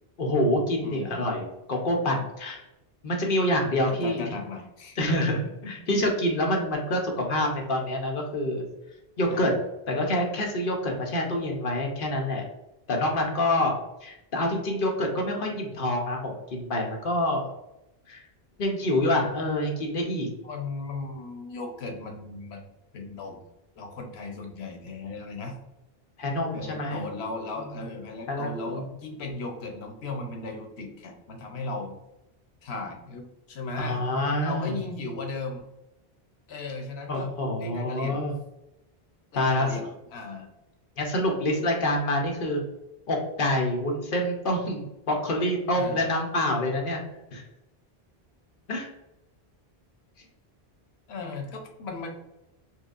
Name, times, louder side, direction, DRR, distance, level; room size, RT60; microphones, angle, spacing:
voice 1, 0.2-2.6 3.0-4.2 5.0-8.6 9.2-9.5 9.9-12.4 12.9-13.7 14.0-17.4 18.1-18.2 18.6-20.3 26.2-27.0 28.3-28.9 33.8-34.7 37.1-38.3 39.4-39.8 41.0-42.6 43.1-47.0 47.3-47.4 48.7-48.9, left 1 dB, 60° left, 1 dB, 0.9 m, -27 dB
voice 2, 0.8-1.2 3.8-5.0 5.3-5.7 9.3-9.6 20.4-22.6 22.9-23.4 23.8-25.6 26.5-32.0 32.6-34.0 34.4-35.6 36.5-37.3 37.6-38.2 39.3-39.8 40.1-40.5 45.7-46.0 51.1-52.1, left 3 dB, 85° left, 2 dB, 1.0 m, -36 dB
4.4 x 2.5 x 2.4 m, 0.92 s
omnidirectional pair, 1.0 m